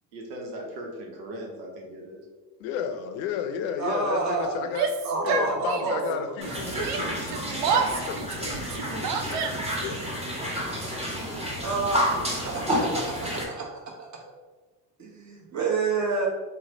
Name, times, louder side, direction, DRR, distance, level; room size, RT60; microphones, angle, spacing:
voice 1, 0.1-2.3, right 1 dB, 85° right, 0 dB, 0.9 m, -39 dB
voice 2, 2.6-4.9 5.2-10.1, left 7 dB, 65° left, 7 dB, 0.6 m, -33 dB
voice 3, 3.8-4.6 5.0-6.2 11.3-12.0 12.4-13.7 14.0-14.1 15.0-16.3, right 4 dB, 35° right, -2 dB, 1.1 m, -29 dB
Yell, 4.6-6.1 6.4-9.8, right 6 dB, 60° right, 0.5 m, -29 dB
sound 1, 6.4-13.4, equal, 15° right, 1.0 m, -30 dB
3.1 x 2.2 x 3.9 m, 1.3 s
hypercardioid pair, 70°, 49 cm